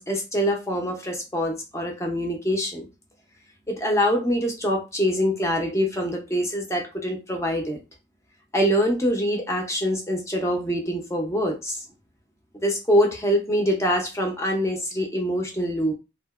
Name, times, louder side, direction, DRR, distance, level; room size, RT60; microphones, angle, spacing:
voice 1, 0.0-2.9 3.7-7.8 8.5-11.8 12.6-15.9, equal, 15° left, 1 dB, 0.6 m, -24 dB
2.8 x 2.5 x 2.4 m, 0.28 s
head